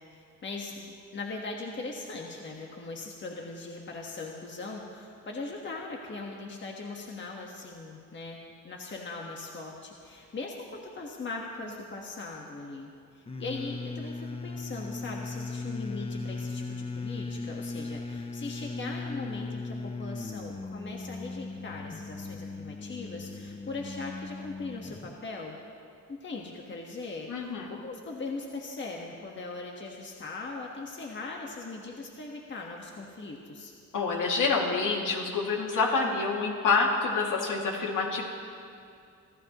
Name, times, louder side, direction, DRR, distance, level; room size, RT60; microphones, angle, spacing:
voice 1, 0.1-25.6 26.1-33.7, left 3 dB, 35° left, -1 dB, 1.5 m, -40 dB
sound 1, 13.3-25.2, left 3 dB, 20° left, 0.6 m, -38 dB
voice 2, 27.3-27.8 33.9-38.2, left 4 dB, 70° left, -1 dB, 2.5 m, -27 dB
27.0 x 14.5 x 3.1 m, 2.4 s
cardioid pair, 125°, 32 cm